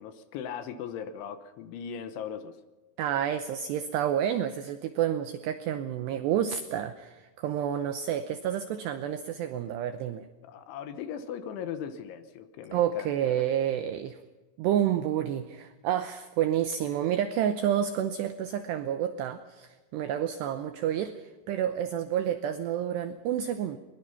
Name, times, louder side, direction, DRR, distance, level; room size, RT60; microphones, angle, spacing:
voice 1, 0.0-2.6 10.4-13.4, left 8 dB, 75° left, 10 dB, 3.2 m, -39 dB
voice 2, 3.0-10.3 12.7-14.2 14.6-23.8, right 10 dB, 80° right, 9 dB, 2.4 m, -29 dB
21.5 x 21.5 x 5.7 m, 1.2 s
omnidirectional pair, 5.9 m